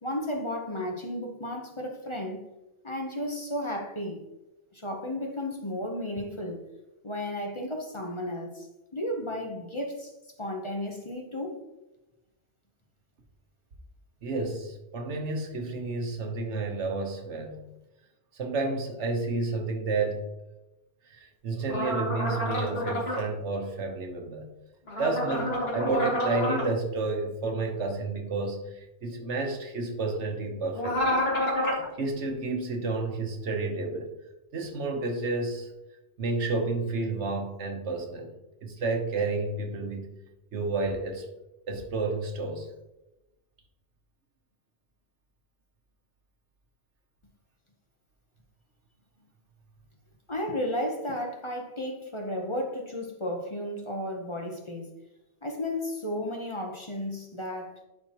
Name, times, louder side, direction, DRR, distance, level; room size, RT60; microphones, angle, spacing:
voice 1, 0.0-2.4 2.8-4.2 4.7-6.6 7.0-8.7 8.9-10.1 10.4-11.6 50.3-54.9 55.4-57.7, left 1 dB, 30° left, 0.9 m, -33 dB
voice 2, 14.2-17.6 18.3-20.3 21.1-24.5 25.0-31.3 32.0-34.1 34.5-35.7 36.2-38.3 38.6-40.2 40.5-41.3 41.7-42.7, right 3 dB, 85° right, 1.3 m, -31 dB
sound 1, 21.7-23.2 24.9-26.7 30.8-31.8, left 1 dB, 60° left, 2.0 m, -28 dB
11.0 x 4.4 x 3.0 m
omnidirectional pair, 1.1 m